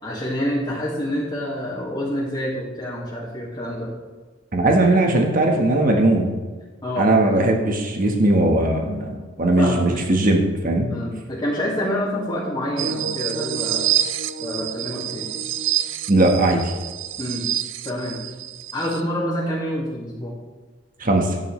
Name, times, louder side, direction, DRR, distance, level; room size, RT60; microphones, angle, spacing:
voice 1, 0.0-3.9 6.8-7.3 9.6-9.9 10.9-13.9 14.4-15.3 17.2-17.5 17.8-18.2 18.7-20.3, equal, 25° left, -8 dB, 2.2 m, -27 dB
voice 2, 4.5-6.3 7.0-9.1 9.4-10.9 16.1-16.7 21.0-21.3, right 2 dB, 50° right, 2 dB, 1.3 m, -18 dB
sound 1, 12.8-19.0, right 10 dB, 90° right, 0.5 m, -27 dB
13.5 x 9.2 x 3.2 m, 1.3 s
head